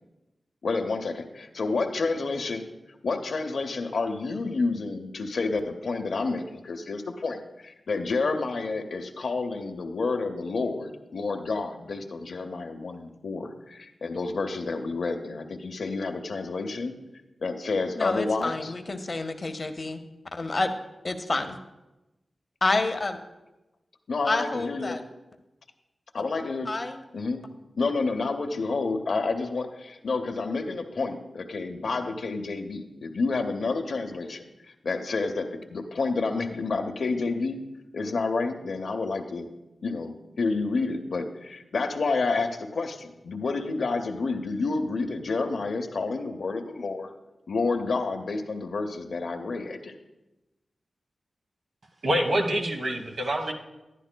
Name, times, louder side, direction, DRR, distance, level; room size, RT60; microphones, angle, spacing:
voice 1, 0.6-2.6 3.0-17.0 17.4-18.7 24.1-25.0 26.1-26.7 27.1-27.4 27.8-37.6 37.9-39.5 39.8-47.1 47.5-49.9, left 3 dB, 75° left, 5 dB, 0.7 m, -29 dB
voice 2, 18.0-20.0 20.3-20.7 21.0-21.6 22.6-23.2 24.2-25.0 26.7-27.0, left 2 dB, 40° left, 7 dB, 0.7 m, -28 dB
voice 3, 52.0-53.5, right 1 dB, 60° right, 4 dB, 1.1 m, -26 dB
11.5 x 10.0 x 2.2 m, 0.99 s
wide cardioid pair, 100°, 0 cm